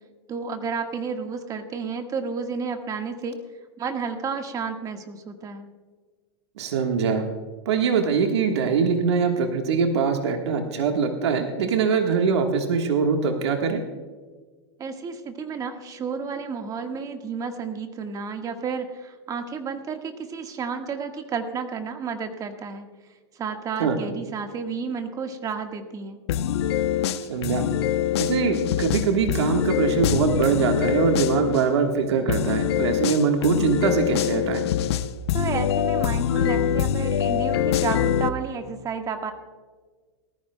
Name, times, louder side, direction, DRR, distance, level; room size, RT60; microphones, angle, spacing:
voice 1, 0.3-3.4 3.8-5.7 14.8-22.9 23.3-26.2 35.3-39.3, right 5 dB, 25° right, 6 dB, 1.6 m, -31 dB
voice 2, 6.6-7.3 7.6-13.8 23.8-24.0 27.3-27.7 28.2-34.7, right 5 dB, 80° right, 4 dB, 1.5 m, -23 dB
sound 1, 26.3-31.6 32.3-38.3, left 10 dB, 75° left, 0.8 m, -24 dB
19.5 x 14.0 x 2.2 m, 1.4 s
hypercardioid pair, 130°, 14 cm